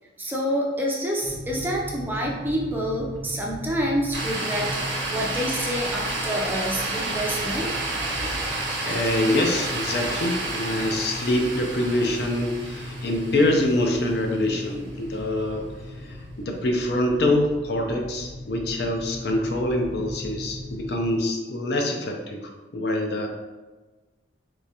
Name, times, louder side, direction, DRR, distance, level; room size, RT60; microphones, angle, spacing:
voice 1, 0.2-4.7 5.0-7.7, equal, 10° right, -2 dB, 0.5 m, -27 dB
sound 1, 1.2-21.2, equal, 15° left, 0.9 m, -38 dB
sound 2, 4.1-14.4, right 2 dB, 80° right, 0.9 m, -30 dB
voice 2, 8.3-15.7 16.0-23.3, left 1 dB, 60° left, 2 dB, 0.5 m, -25 dB
3.7 x 3.1 x 2.8 m, 1.2 s
head